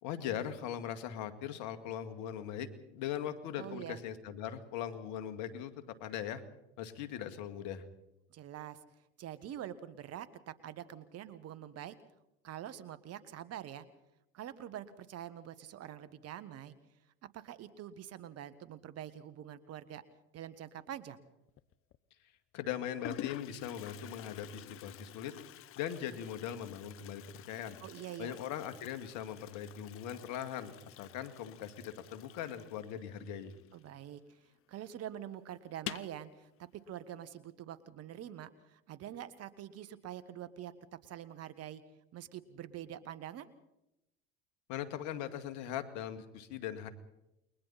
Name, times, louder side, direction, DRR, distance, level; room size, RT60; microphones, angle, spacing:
voice 1, 0.0-6.4 6.8-7.8 22.5-25.3 25.8-27.8 28.2-33.5 44.7-46.9, left 10 dB, 65° left, 9 dB, 2.2 m, -40 dB
voice 2, 3.6-4.0 8.3-8.8 9.2-11.9 12.4-13.9 14.3-16.7 17.3-20.0 20.3-21.2 27.8-28.3 33.7-40.7 41.0-41.8 42.1-43.5, right 11 dB, 50° right, 14 dB, 1.8 m, -45 dB
Toilet flush, 21.5-22.0 22.7-22.8 23.0-34.3 34.5-34.6 35.0-35.1 35.7-36.2, left 12 dB, 45° left, 0.8 m, -49 dB
29.5 x 22.0 x 4.3 m, 0.89 s
hypercardioid pair, 80°, 31 cm